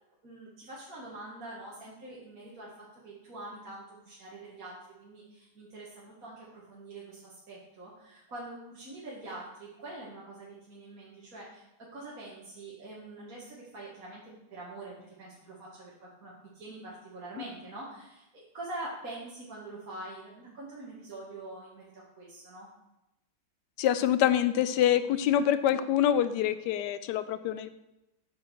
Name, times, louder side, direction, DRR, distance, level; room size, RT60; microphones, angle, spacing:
voice 1, 0.2-14.2 14.5-22.7, right 2 dB, 45° right, -6 dB, 2.3 m, -45 dB
voice 2, 23.8-27.7, left 10 dB, 70° left, 12 dB, 1.1 m, -26 dB
9.1 x 7.2 x 4.7 m, 0.94 s
omnidirectional pair, 2.1 m